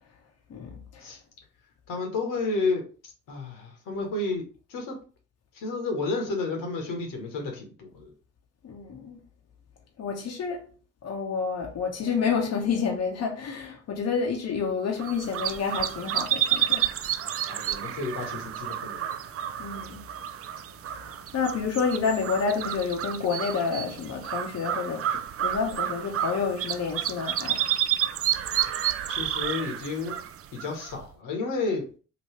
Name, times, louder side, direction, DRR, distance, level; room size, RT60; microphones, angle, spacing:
voice 1, 1.9-2.8 3.3-4.4 4.7-5.0 5.5-8.1 17.5-19.1 29.1-30.1 30.5-31.9, left 3 dB, 70° left, 1.0 m, -31 dB
voice 2, 8.6-9.2 10.0-10.6 11.0-16.9 19.6-20.0 21.3-25.1 25.4-27.6, left 5 dB, 50° left, 0.8 m, -29 dB
sound 1, 15.0-31.0, right 10 dB, 45° right, 0.4 m, -30 dB
2.9 x 2.6 x 3.1 m
hypercardioid pair, 45°, 33 cm